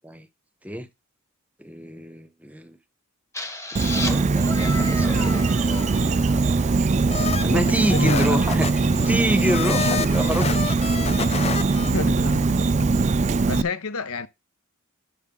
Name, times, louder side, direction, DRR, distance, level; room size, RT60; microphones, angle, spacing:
voice 1, 1.6-2.8 4.0-5.4 6.3-7.1 7.4-8.7 9.1-10.5, right 1 dB, 5° right, 0.9 m, -27 dB
sound 1, 3.3-7.1, left 2 dB, 15° left, 1.2 m, -34 dB
Insect, 3.8-13.6, right 3 dB, 35° right, 0.4 m, -21 dB
sound 2, 5.3-6.3 7.1-11.9, left 6 dB, 30° left, 0.4 m, -31 dB
voice 2, 7.4-8.4 9.9-10.0 11.8-13.0 13.4-14.3, left 4 dB, 70° left, 0.8 m, -30 dB
11.0 x 6.5 x 3.7 m
head